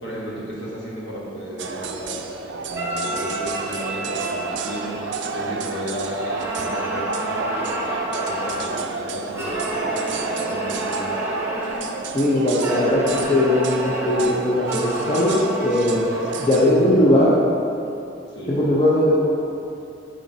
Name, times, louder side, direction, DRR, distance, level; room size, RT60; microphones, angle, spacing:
voice 1, 0.0-11.1 18.3-18.7, equal, 65° left, -5 dB, 1.2 m, -34 dB
sound 1, 1.6-16.7, right 4 dB, 65° right, 0.4 m, -30 dB
sound 2, 2.7-5.8 6.2-8.8 9.3-12.0 12.6-16.8, right 1 dB, 15° right, 0.5 m, -30 dB
voice 2, 12.1-13.0 13.3-16.0 16.4-17.3 18.5-19.3, left 1 dB, 25° left, -7 dB, 0.6 m, -19 dB
7.1 x 5.0 x 2.7 m, 2.7 s
head